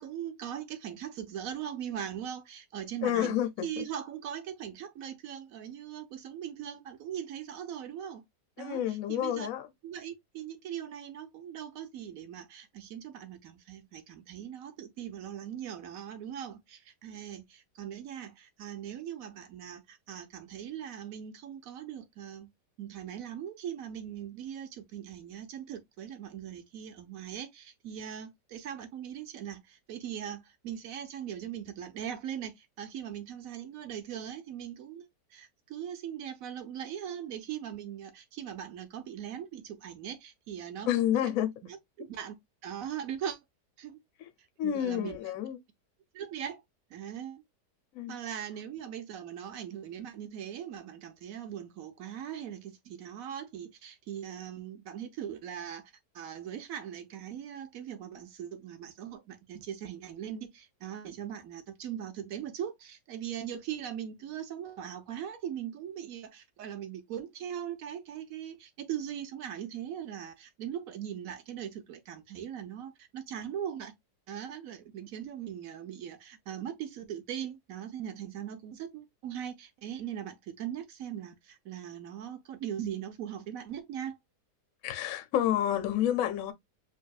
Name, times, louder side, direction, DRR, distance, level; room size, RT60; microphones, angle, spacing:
voice 1, 0.0-8.2 8.6-8.8 9.1-9.5 9.8-22.5 22.8-40.9 41.2-41.3 42.0-42.4 42.6-43.4 43.8-44.0 44.6-45.2 46.1-46.6 46.9-47.4 48.1-73.9 74.3-84.2, right 9 dB, 60° right, 1.1 m, -40 dB
voice 2, 3.0-3.8 8.6-9.7 40.8-41.5 44.2-44.3 44.6-45.6 47.9-48.2 84.8-86.5, left 11 dB, 65° left, 0.9 m, -29 dB
4.9 x 2.8 x 2.3 m
omnidirectional pair, 1.8 m